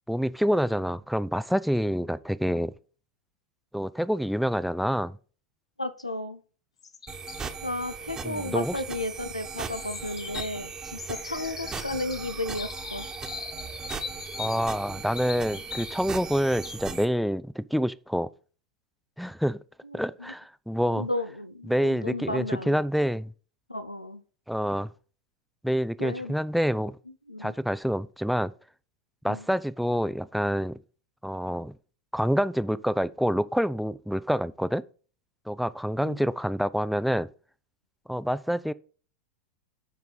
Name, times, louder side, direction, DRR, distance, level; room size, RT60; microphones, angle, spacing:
voice 1, 0.1-2.7 3.7-5.2 8.2-8.8 14.4-18.3 19.2-19.6 19.9-21.1 21.7-23.3 24.5-24.9 25.6-27.0 27.4-28.5 29.2-30.8 31.2-31.8 32.1-34.8 35.5-37.3 38.1-38.7, equal, ahead, 0.4 m, -27 dB
voice 2, 5.8-6.4 7.6-13.1 19.8-20.0 20.9-22.8 23.7-24.2 26.0-26.3 27.3-27.5 29.3-29.4 36.0-36.2, left 2 dB, 90° left, 0.8 m, -33 dB
sound 1, 6.8-7.5 9.7-16.0 16.3-16.8, left 6 dB, 70° left, 1.1 m, -40 dB
sound 2, 7.1-17.1, right 5 dB, 20° right, 1.3 m, -38 dB
11.0 x 4.6 x 5.4 m
figure-of-eight pair, 90°, 3 cm